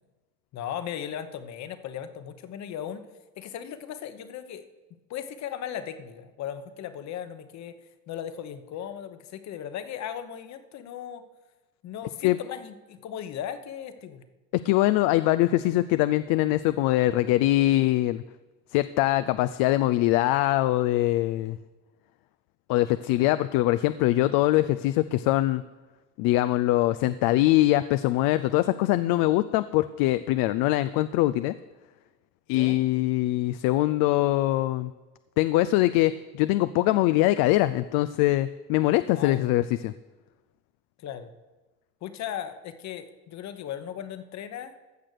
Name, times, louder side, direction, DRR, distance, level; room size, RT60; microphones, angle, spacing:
voice 1, 0.5-3.0 3.4-4.7 5.1-7.8 8.1-11.2 11.8-14.2 32.5-32.7 39.1-39.5 41.0-41.3 42.0-44.7, left 9 dB, 50° left, 10 dB, 1.0 m, -37 dB
voice 2, 14.5-18.2 18.7-21.6 22.7-25.6 26.2-31.5 32.5-34.9 35.4-39.9, left 16 dB, 70° left, 13 dB, 0.5 m, -23 dB
15.0 x 6.0 x 6.7 m, 1.2 s
cardioid pair, 120°, 35 cm